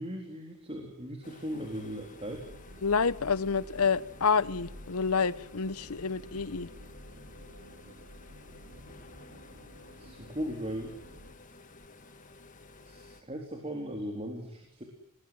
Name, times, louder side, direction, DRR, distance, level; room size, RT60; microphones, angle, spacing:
voice 1, 0.0-2.5 9.5-9.6 10.0-10.9 12.8-14.8, equal, 25° right, 1 dB, 3.8 m, -38 dB
ambiant hangar sound, 1.2-13.2, left 3 dB, 35° left, 1.9 m, -53 dB
sound 1, 2.3-11.3, equal, 75° right, 3.2 m, -51 dB
voice 2, 2.8-6.7, left 5 dB, 80° left, 18 dB, 0.9 m, -28 dB
29.0 x 20.5 x 7.8 m, 0.77 s
head